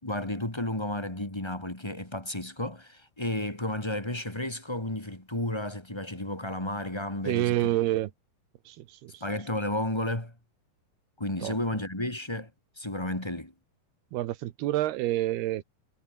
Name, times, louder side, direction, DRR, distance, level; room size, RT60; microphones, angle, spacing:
voice 1, 0.0-7.7 9.2-10.3 11.2-12.5 12.8-13.5, left 1 dB, 10° left, 2.2 m, -32 dB
voice 2, 7.3-8.1 8.7-9.2 11.4-11.6 14.1-15.6, right 15 dB, 80° right, 3.0 m, -28 dB
omnidirectional pair, 4.6 m